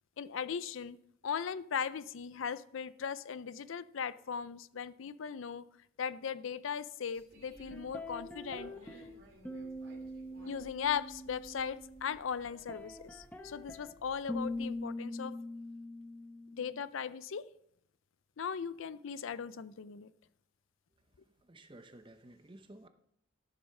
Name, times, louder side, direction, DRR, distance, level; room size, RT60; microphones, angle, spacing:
voice 1, 0.2-1.0 1.2-5.7 6.0-8.7 10.4-15.4 16.6-17.5 18.4-20.1, left 7 dB, 75° left, 0.5 m, -38 dB
sound 1, 7.1-14.8, right 1 dB, 70° right, 2.9 m, -59 dB
sound 2, 7.7-9.1 9.4-12.2 12.4-16.8, left 1 dB, 5° left, 0.9 m, -43 dB
voice 2, 21.2-22.9, right 1 dB, 25° right, 0.7 m, -54 dB
13.0 x 7.1 x 5.4 m
head